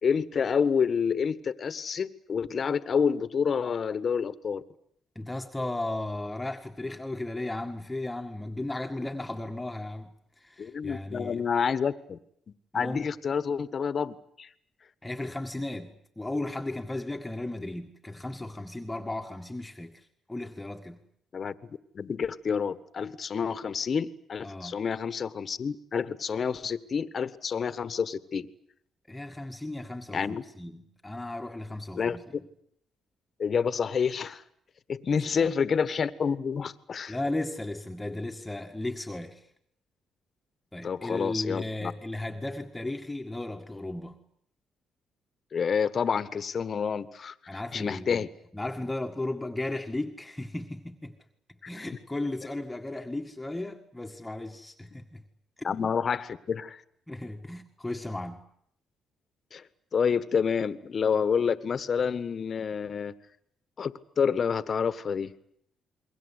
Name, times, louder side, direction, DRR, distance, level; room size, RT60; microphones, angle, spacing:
voice 1, 0.0-4.6 10.6-12.2 12.7-14.5 21.3-28.5 30.1-30.4 31.9-32.2 33.4-34.4 34.9-37.2 40.8-41.9 45.5-47.3 47.7-48.3 55.6-56.8 59.5-59.6 59.9-63.1 63.8-65.3, left 6 dB, 45° left, 1.5 m, -28 dB
voice 2, 5.2-11.4 12.7-13.1 15.0-21.0 24.4-24.8 29.1-32.2 35.1-35.5 37.1-39.5 40.7-44.2 47.5-48.3 48.5-51.2 51.7-55.2 55.6-55.9 57.1-58.5, left 2 dB, 10° left, 1.9 m, -35 dB
29.0 x 22.0 x 8.3 m
cardioid pair, 90°, 0 cm